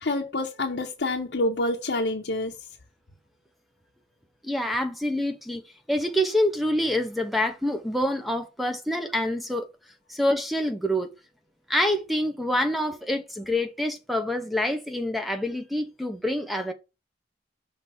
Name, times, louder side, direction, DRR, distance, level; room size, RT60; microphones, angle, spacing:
voice 1, 0.0-2.6, left 2 dB, 75° left, 0.9 m, -27 dB
voice 2, 4.4-5.6 5.9-9.7 10.1-11.1 11.7-16.7, left 1 dB, ahead, 0.8 m, -26 dB
6.0 x 3.4 x 5.6 m
head